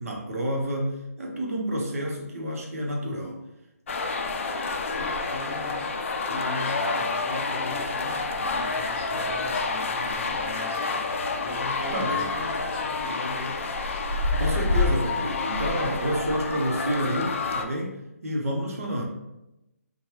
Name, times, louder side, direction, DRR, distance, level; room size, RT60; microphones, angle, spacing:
voice 1, 0.0-3.4 11.9-12.3 14.3-19.0, equal, 65° right, 0 dB, 0.8 m, -29 dB
sound 1, 3.9-17.6, left 3 dB, 55° left, 0.3 m, -28 dB
voice 2, 4.9-13.6, left 1 dB, 20° left, -6 dB, 1.1 m, -39 dB
3.0 x 2.2 x 2.9 m, 0.92 s
hypercardioid pair, 155°, 8 cm